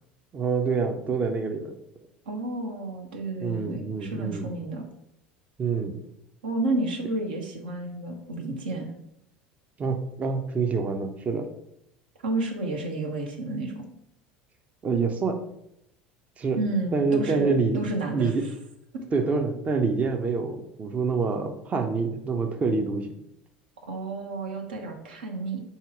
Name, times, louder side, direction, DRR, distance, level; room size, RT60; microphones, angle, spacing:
voice 1, 0.3-1.7 3.4-4.5 5.6-6.0 9.8-11.5 14.8-15.4 16.4-16.6 16.9-17.8 18.1-18.4 19.1-23.1, right 4 dB, 30° right, 5 dB, 0.5 m, -26 dB
voice 2, 2.3-4.8 6.4-8.9 12.2-13.8 16.6-18.3 18.9-19.1 23.9-25.6, right 2 dB, 75° right, 2 dB, 0.8 m, -31 dB
3.7 x 2.8 x 4.7 m, 0.79 s
figure-of-eight pair, 70°, 5 cm